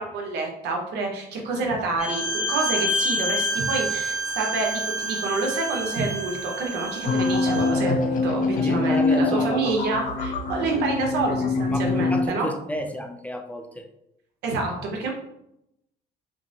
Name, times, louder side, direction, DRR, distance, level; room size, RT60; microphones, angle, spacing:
voice 1, 0.0-12.5 14.4-15.1, right 3 dB, 80° right, 0 dB, 1.1 m, -28 dB
Bowed string instrument, 2.0-7.8, equal, 50° right, 1.3 m, -28 dB
sound 1, 7.0-12.3, left 3 dB, 55° left, 0.6 m, -24 dB
voice 2, 8.6-9.7 11.7-13.9, left 1 dB, 10° left, 4 dB, 0.4 m, -31 dB
5.8 x 2.1 x 2.8 m, 0.81 s
cardioid pair, 110°, 17 cm